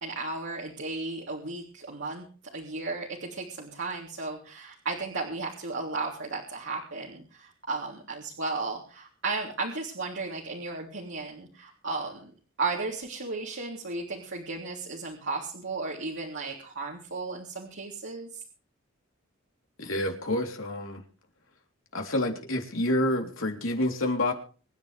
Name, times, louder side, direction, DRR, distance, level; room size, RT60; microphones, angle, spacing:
voice 1, 0.0-2.3 2.5-12.3 12.6-18.4, right 3 dB, 65° right, -3 dB, 3.4 m, -34 dB
voice 2, 19.8-21.0 21.9-24.3, left 1 dB, 70° left, 2 dB, 3.5 m, -28 dB
25.5 x 10.5 x 3.4 m, 0.39 s
head